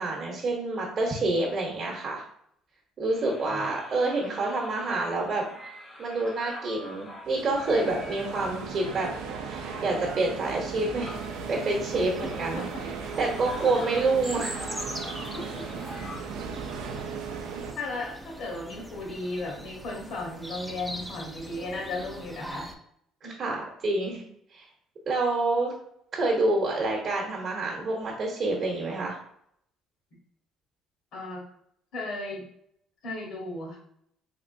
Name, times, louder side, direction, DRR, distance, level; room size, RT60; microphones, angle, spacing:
voice 1, 0.0-2.2 3.0-5.4 6.0-9.1 9.5-11.2 11.5-12.7 13.2-14.6 23.4-24.2 24.5-24.6 25.1-25.7 26.1-29.2, right 2 dB, 40° right, -1 dB, 0.9 m, -27 dB
sound 1, 3.1-16.6, left 1 dB, 30° left, 0.8 m, -45 dB
voice 2, 3.4-3.8 12.2-12.7 15.3-15.6 17.7-22.7 23.2-23.3 31.1-31.4 31.9-32.4 33.0-33.8, left 2 dB, 70° left, -2 dB, 1.3 m, -35 dB
sound 2, 7.2-17.7, right 6 dB, 85° right, 0.4 m, -37 dB
sound 3, 11.1-22.7, equal, 5° right, 0.4 m, -42 dB
3.6 x 3.1 x 2.6 m, 0.69 s
cardioid pair, 115°, 0 cm